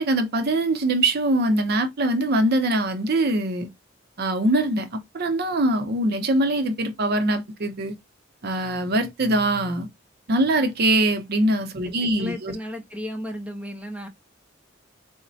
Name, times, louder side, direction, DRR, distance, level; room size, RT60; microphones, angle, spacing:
voice 1, 0.0-3.7 4.2-7.9 8.4-9.9 10.3-12.6, right 1 dB, 55° right, 0.6 m, -23 dB
voice 2, 11.8-14.1, left 1 dB, 5° right, 0.7 m, -35 dB
4.0 x 2.1 x 2.6 m
head